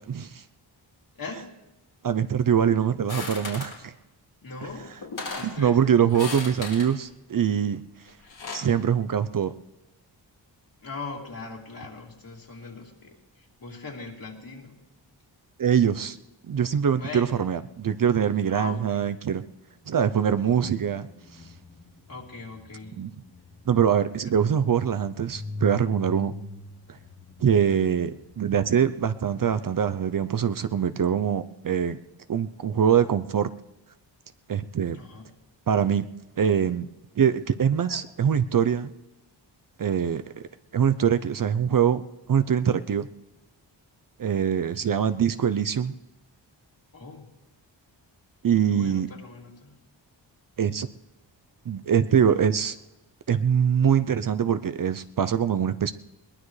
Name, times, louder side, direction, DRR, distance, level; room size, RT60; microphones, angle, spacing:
voice 1, 0.1-0.4 2.0-3.9 5.4-7.8 8.5-9.5 15.6-16.2 16.5-19.4 19.9-21.1 21.3-21.4 23.0-23.1 23.7-26.3 27.4-32.0 32.3-33.5 34.5-35.0 35.7-36.1 36.4-36.9 37.2-38.9 39.8-40.2 40.7-43.1 44.2-45.9 48.4-49.1 50.6-50.9 51.7-52.8 53.3-55.9, right 8 dB, 50° right, 12 dB, 0.6 m, -23 dB
voice 2, 1.1-1.5 4.4-4.9 5.3-5.9 10.8-14.8 17.0-17.3 18.5-19.1 22.1-22.9 24.2-24.4 34.9-35.3 44.9-45.1 46.9-47.3 48.7-49.8, left 3 dB, 50° left, -1 dB, 3.0 m, -40 dB
sound 1, 3.1-3.8 4.7-4.8 5.0-5.6 6.1-6.9 8.1-8.7, left 4 dB, 85° left, 4.1 m, -35 dB
sound 2, 19.8-31.3 37.5-37.6 37.9-38.1, left 2 dB, 30° left, 1.4 m, -43 dB
21.5 x 19.0 x 3.2 m, 0.97 s
cardioid pair, 70°, 45 cm